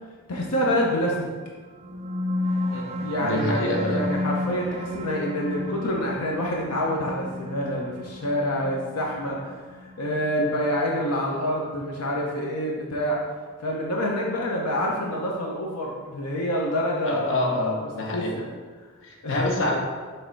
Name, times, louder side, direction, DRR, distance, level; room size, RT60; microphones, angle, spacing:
voice 1, 0.3-1.2 3.0-9.5 9.8-13.2 13.6-17.8 18.1-18.5 19.2-19.4, equal, 85° left, -2 dB, 0.8 m, -27 dB
sound 1, 1.7-12.6, left 2 dB, 30° right, 0.4 m, -33 dB
voice 2, 2.7-4.0 17.0-18.3 19.0-19.8, left 1 dB, 60° left, -1 dB, 1.0 m, -27 dB
6.4 x 3.3 x 4.6 m, 1.5 s
head